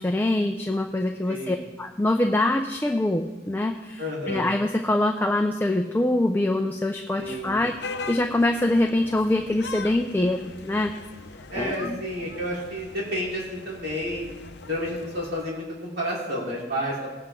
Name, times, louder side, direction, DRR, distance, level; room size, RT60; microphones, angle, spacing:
voice 1, 0.0-4.0 4.3-10.9 11.6-12.0, left 1 dB, 10° left, 3 dB, 0.5 m, -24 dB
voice 2, 1.3-1.6 4.0-4.5 7.2-7.6 11.5-14.3 14.7-17.0, equal, 60° right, -7 dB, 4.2 m, -30 dB
sound 1, 7.2-15.4, left 4 dB, 70° left, 0.6 m, -41 dB
19.5 x 7.8 x 3.8 m, 1.2 s
head